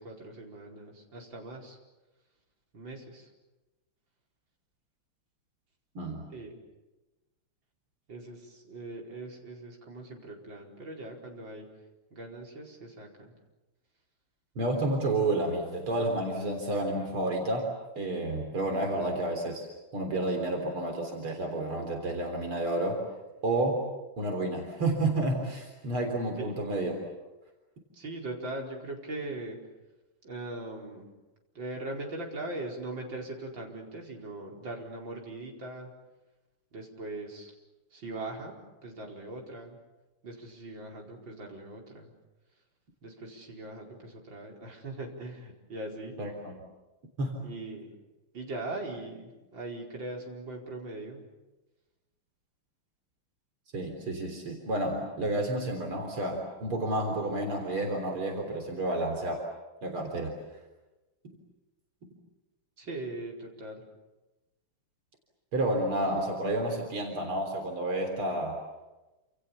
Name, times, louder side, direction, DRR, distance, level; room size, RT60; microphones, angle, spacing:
voice 1, 0.0-1.8 2.7-3.3 6.3-6.6 8.1-11.7 12.1-13.3 26.4-26.5 27.9-29.6 30.2-31.1 31.6-35.9 36.7-37.5 37.9-39.8 40.2-42.1 43.0-46.2 47.4-47.9 48.3-51.2 62.8-63.8, right 2 dB, 60° right, -1 dB, 5.5 m, -40 dB
voice 2, 14.6-17.7 18.0-19.7 19.9-23.0 23.4-23.9 24.2-27.1 46.2-46.6 47.2-47.4 53.7-59.4 59.8-60.4 65.5-68.6, right 1 dB, 75° right, 2 dB, 4.6 m, -30 dB
29.0 x 28.0 x 7.2 m, 1.1 s
omnidirectional pair, 2.4 m